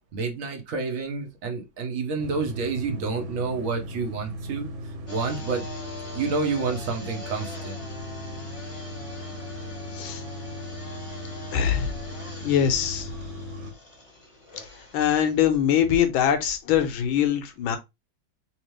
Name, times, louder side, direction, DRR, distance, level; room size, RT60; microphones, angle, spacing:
voice 1, 0.1-4.7 5.1-5.6 6.1-7.8, right 4 dB, 55° right, 1.0 m, -29 dB
sound 1, 2.2-13.7, equal, 85° right, 1.7 m, -37 dB
sound 2, 5.1-15.4, left 2 dB, 25° left, 0.7 m, -43 dB
voice 2, 11.5-11.9 12.4-13.1 14.9-17.8, left 9 dB, 85° left, 1.5 m, -23 dB
3.5 x 2.9 x 3.1 m
omnidirectional pair, 2.1 m